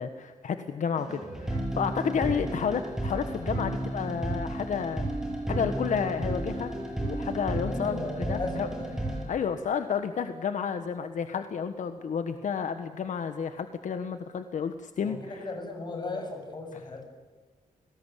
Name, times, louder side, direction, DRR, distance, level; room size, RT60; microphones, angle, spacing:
voice 1, 0.0-5.1 5.5-6.7 7.0-8.7 9.3-15.5, left 7 dB, 65° left, 9 dB, 1.4 m, -31 dB
sound 1, 1.0-9.2, right 1 dB, 5° right, 7.7 m, -33 dB
voice 2, 7.7-9.0 15.0-17.0, left 2 dB, 35° left, 4 dB, 7.4 m, -37 dB
28.5 x 20.0 x 8.5 m, 1.4 s
wide cardioid pair, 155°, 14 cm